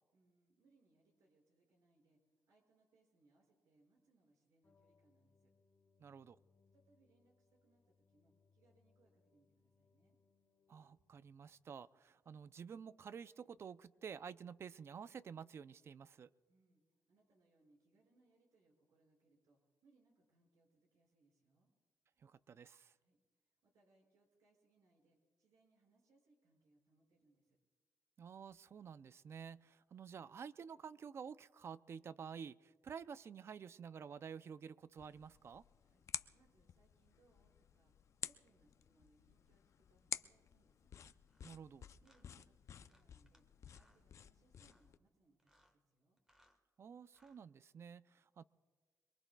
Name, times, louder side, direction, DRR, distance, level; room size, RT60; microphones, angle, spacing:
voice 1, 0.1-5.5 6.7-10.2 16.5-21.7 22.9-27.6 35.8-36.0 36.3-37.9 38.2-40.9 42.0-46.2, right 2 dB, 85° right, -1 dB, 5.6 m, -75 dB
sound 1, 4.6-11.7, left 4 dB, 35° left, 1.3 m, -76 dB
voice 2, 6.0-6.4 10.7-16.3 22.2-22.9 28.2-35.6 41.4-41.9 46.8-48.4, right 7 dB, 45° right, 15 dB, 0.4 m, -51 dB
sound 2, 35.0-45.0, left 8 dB, 55° left, 0.4 m, -51 dB
sound 3, 41.3-41.5 42.0-42.2 42.9-43.4 43.7-44.0 44.5-44.9 45.4-45.8 46.2-46.6 47.1-47.4, equal, 10° right, 1.4 m, -73 dB
26.5 x 22.0 x 2.3 m, 1.5 s
cardioid pair, 130°, 6 cm